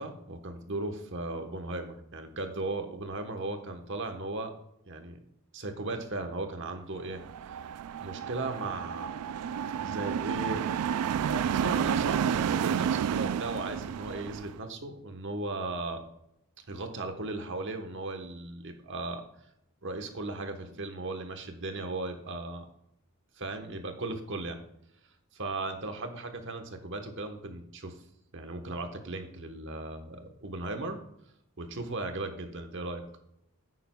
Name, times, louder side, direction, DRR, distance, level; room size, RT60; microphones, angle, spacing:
voice 1, 0.0-4.5 4.9-5.2 5.5-7.2 8.0-9.1 9.8-10.6 11.3-16.0 16.7-19.2 19.8-22.7 23.4-24.6 25.3-28.0 28.3-31.0 31.6-33.0, right 2 dB, 55° right, 5 dB, 1.2 m, -36 dB
sound 1, 7.1-14.6, right 8 dB, 85° right, 0.3 m, -31 dB
9.9 x 9.1 x 2.3 m, 0.77 s
head